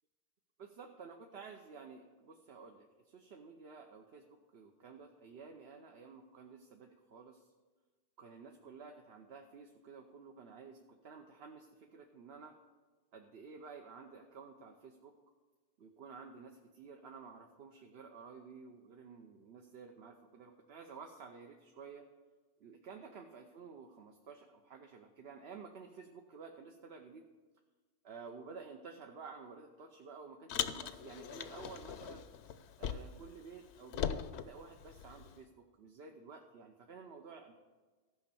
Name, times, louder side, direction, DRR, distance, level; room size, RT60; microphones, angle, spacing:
voice 1, 0.6-7.5 8.2-12.5 13.1-15.1 15.8-22.1 22.6-27.3 28.0-32.3 32.8-34.2 34.4-37.5, right 5 dB, 65° right, 3 dB, 1.0 m, -52 dB
Car, 30.5-33.3 33.6-35.4, left 9 dB, 70° left, 0.9 m, -40 dB
14.5 x 5.3 x 7.0 m, 1.3 s
omnidirectional pair, 1.2 m